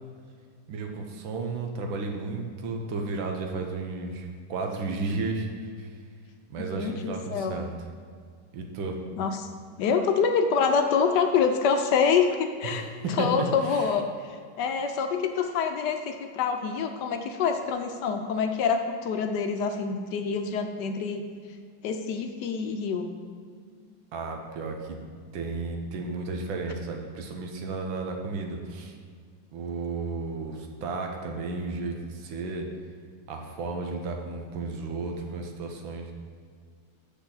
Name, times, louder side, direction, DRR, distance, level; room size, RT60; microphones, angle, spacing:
voice 1, 0.7-5.5 5.8-5.9 6.5-7.7 8.5-9.0 12.6-13.9 24.1-25.0 25.3-28.9 29.5-32.7 33.3-36.1, right 3 dB, 90° right, 3 dB, 1.7 m, -33 dB
voice 2, 6.7-7.6 9.2-9.5 9.8-12.9 13.2-21.3 21.8-23.1, left 6 dB, 70° left, 6 dB, 1.1 m, -26 dB
8.2 x 6.7 x 3.9 m, 2.1 s
omnidirectional pair, 2.1 m